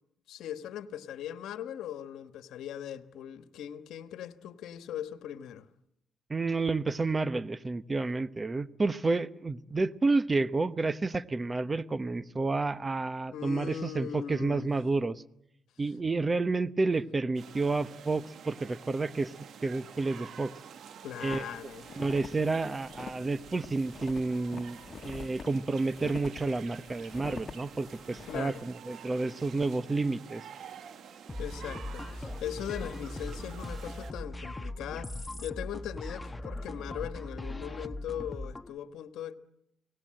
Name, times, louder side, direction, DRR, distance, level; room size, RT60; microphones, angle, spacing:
voice 1, 0.3-5.7 13.3-14.7 21.0-21.9 28.3-28.7 31.4-39.4, left 10 dB, 80° left, 1.4 m, -39 dB
voice 2, 6.3-15.2 15.8-19.3 19.6-20.5 21.2-21.4 21.9-30.4, right 3 dB, 25° right, 0.9 m, -30 dB
sound 1, 17.3-34.1, right 8 dB, 65° right, 1.3 m, -49 dB
sound 2, 21.3-28.6, left 5 dB, 45° left, 1.3 m, -46 dB
sound 3, 31.3-38.7, left 1 dB, 15° left, 1.0 m, -39 dB
29.5 x 19.5 x 7.7 m
cardioid pair, 90°, 0 cm